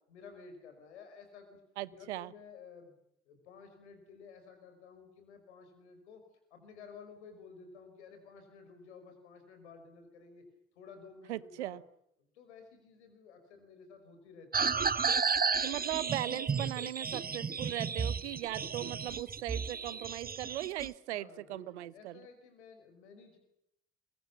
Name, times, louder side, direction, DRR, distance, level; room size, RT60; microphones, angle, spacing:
voice 1, 0.1-1.6 1.9-3.0 3.3-6.2 6.5-10.4 10.8-11.8 12.2-14.8 21.1-23.4, left 5 dB, 85° left, 7 dB, 5.2 m, -53 dB
voice 2, 1.8-2.3 11.3-11.8 15.6-22.2, right 15 dB, 85° right, 20 dB, 0.9 m, -38 dB
sound 1, 14.5-20.9, right 5 dB, 25° right, 1.2 m, -33 dB
25.5 x 23.0 x 7.2 m, 0.76 s
figure-of-eight pair, 45°, 33 cm